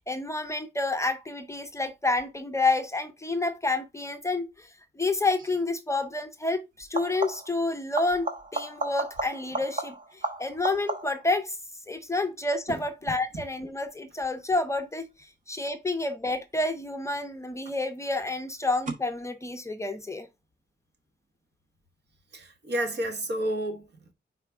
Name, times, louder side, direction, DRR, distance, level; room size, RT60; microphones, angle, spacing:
voice 1, 0.0-4.7 5.0-11.6 11.9-15.0 15.5-20.3, left 2 dB, 15° left, 0.6 m, -29 dB
sound 1, 5.4-5.6 6.8-7.6 7.9-11.3 16.8-17.3 18.9-19.0, right 2 dB, 45° right, 1.1 m, -34 dB
voice 2, 22.3-24.1, right 1 dB, 65° right, 1.5 m, -31 dB
5.1 x 4.3 x 4.6 m
wide cardioid pair, 170°, 19 cm